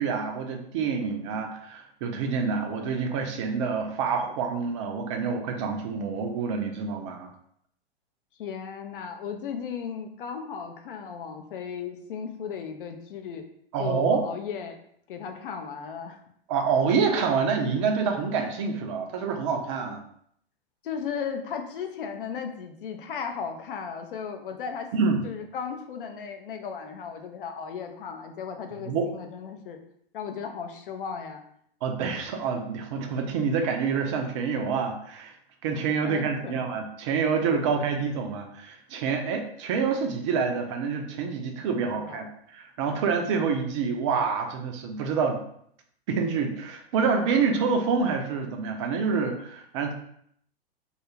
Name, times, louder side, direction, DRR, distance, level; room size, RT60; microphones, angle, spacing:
voice 1, 0.0-7.3 13.7-14.2 16.5-20.0 24.9-25.3 28.8-29.0 31.8-35.3 35.6-45.4 46.1-49.9, right 5 dB, 30° right, 4 dB, 0.4 m, -27 dB
voice 2, 8.4-13.4 13.8-14.8 15.1-16.2 20.8-24.9 25.2-29.8 30.1-31.4 36.0-36.6 42.0-42.3, left 6 dB, 60° left, 5 dB, 0.5 m, -36 dB
2.4 x 2.3 x 3.0 m, 0.68 s
figure-of-eight pair, 105°, 31 cm